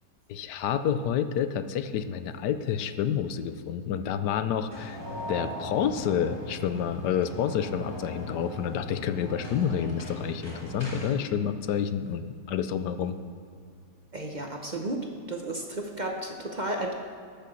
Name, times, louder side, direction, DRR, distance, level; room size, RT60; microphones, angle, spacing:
voice 1, 0.3-5.0 5.3-13.2, left 8 dB, 80° left, 11 dB, 1.2 m, -29 dB
sound 1, 4.7-11.2, equal, 15° left, 1.7 m, -39 dB
voice 2, 14.1-15.0 15.3-16.9, right 1 dB, 35° right, 2 dB, 0.8 m, -33 dB
13.5 x 6.8 x 6.3 m, 2.3 s
omnidirectional pair, 1.8 m